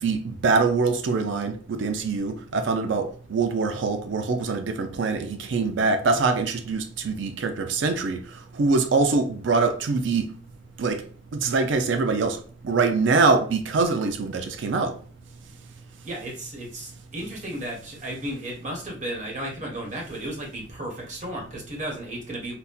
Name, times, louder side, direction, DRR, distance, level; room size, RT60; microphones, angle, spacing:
voice 1, 0.0-8.2 8.6-10.3 10.8-11.0 11.3-12.4 12.6-15.0, right 4 dB, 85° right, 0.5 m, -24 dB
voice 2, 16.0-22.5, right 1 dB, 40° right, 1.1 m, -34 dB
4.0 x 2.1 x 2.3 m
head